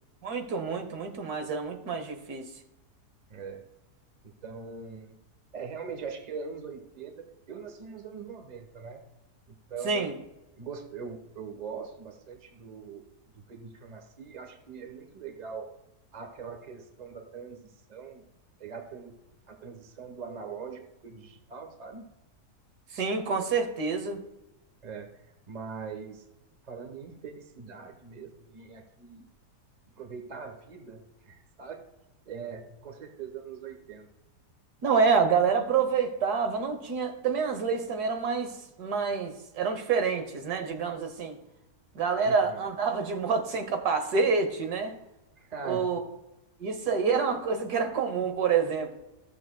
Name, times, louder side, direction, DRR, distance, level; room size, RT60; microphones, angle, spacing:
voice 1, 0.2-2.4 9.8-10.1 22.9-24.2 34.8-38.5 38.8-41.4 41.9-45.0 45.6-46.0 46.6-48.9, right 5 dB, 75° right, 6 dB, 1.5 m, -27 dB
voice 2, 3.3-3.6 4.2-5.1 5.5-9.0 9.5-10.1 10.6-13.0 13.5-15.8 16.1-18.2 18.6-19.2 19.5-22.1 24.8-25.2 25.5-26.2 26.6-29.3 30.0-31.9 32.3-34.1 42.2-42.6 45.4-46.0, right 5 dB, 30° right, 5 dB, 1.0 m, -42 dB
15.0 x 7.2 x 2.2 m, 0.95 s
omnidirectional pair, 1.7 m